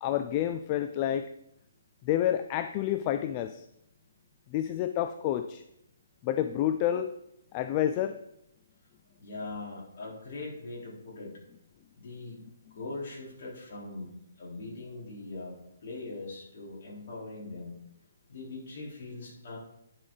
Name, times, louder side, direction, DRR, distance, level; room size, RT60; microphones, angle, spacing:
voice 1, 0.0-1.3 2.0-3.6 4.5-5.6 6.2-7.1 7.5-8.2, left 11 dB, 30° left, 10 dB, 0.3 m, -29 dB
voice 2, 9.2-11.3 12.0-12.4 12.8-14.1 14.4-17.7 18.3-19.6, left 2 dB, 50° left, -4 dB, 3.6 m, -41 dB
9.6 x 5.9 x 3.8 m, 0.79 s
figure-of-eight pair, 135°, 0 cm